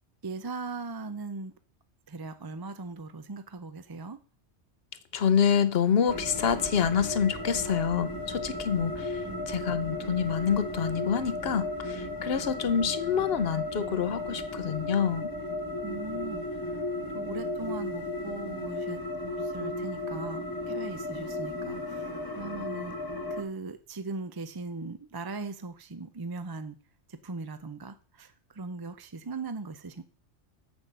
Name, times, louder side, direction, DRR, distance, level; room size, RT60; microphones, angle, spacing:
voice 1, 0.2-1.5 2.1-4.2 9.2-9.5 15.8-16.8 17.1-19.0 19.4-22.9 23.3-26.8 27.1-30.0, right 3 dB, 30° right, 0.5 m, -39 dB
voice 2, 5.1-15.3, left 7 dB, 60° left, 0.9 m, -27 dB
sound 1, 6.1-23.4, left 2 dB, 20° left, 1.3 m, -35 dB
7.6 x 6.1 x 6.7 m
omnidirectional pair, 1.2 m